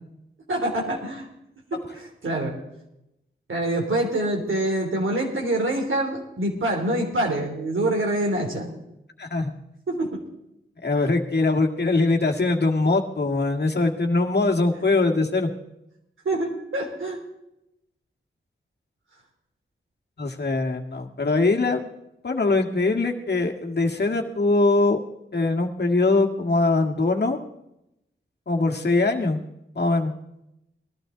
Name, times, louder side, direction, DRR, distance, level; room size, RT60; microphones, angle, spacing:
voice 1, 0.5-1.3 1.7-2.5 3.5-8.7 9.9-10.2 16.2-17.2, right 1 dB, 75° right, 1 dB, 3.5 m, -25 dB
voice 2, 9.2-9.5 10.8-15.5 20.2-21.9 22.2-25.0 25.3-27.4 28.5-29.4 29.7-30.1, left 3 dB, 55° left, 2 dB, 1.8 m, -22 dB
19.0 x 12.0 x 3.9 m, 0.85 s
cardioid pair, 40°, 21 cm